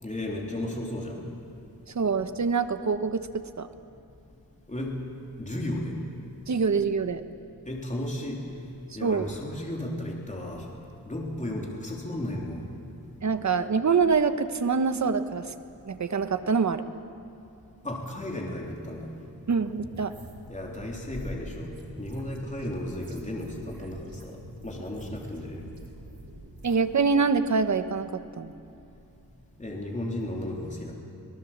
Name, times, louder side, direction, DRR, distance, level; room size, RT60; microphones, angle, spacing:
voice 1, 0.0-1.2 4.7-5.0 5.4-5.9 7.7-8.4 9.0-10.7 11.1-12.7 17.8-19.1 20.5-21.7 22.0-24.4 24.6-25.6 29.6-31.0, left 1 dB, 20° left, -1 dB, 3.5 m, -34 dB
voice 2, 1.9-3.7 6.5-7.2 9.0-9.3 13.2-15.5 15.8-16.8 19.5-20.1 26.6-28.5, right 5 dB, 50° right, 10 dB, 1.1 m, -25 dB
sound 1, 19.5-26.9, right 2 dB, 70° right, 2.9 m, -47 dB
24.5 x 19.0 x 7.4 m, 2.7 s
wide cardioid pair, 95°, 36 cm